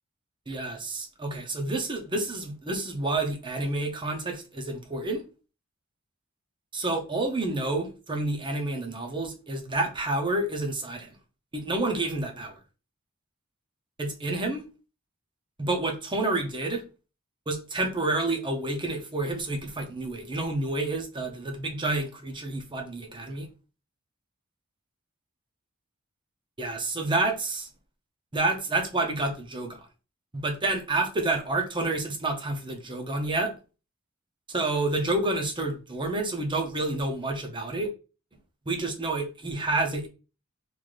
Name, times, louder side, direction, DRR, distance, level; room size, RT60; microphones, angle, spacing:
voice 1, 0.5-5.2 6.7-11.1 11.5-12.5 14.0-14.6 15.6-16.8 17.5-23.5 26.6-27.7 28.3-29.8 30.3-33.5 34.5-37.9 38.7-40.1, right 2 dB, 25° right, 0.8 m, -29 dB
3.2 x 2.7 x 3.9 m
head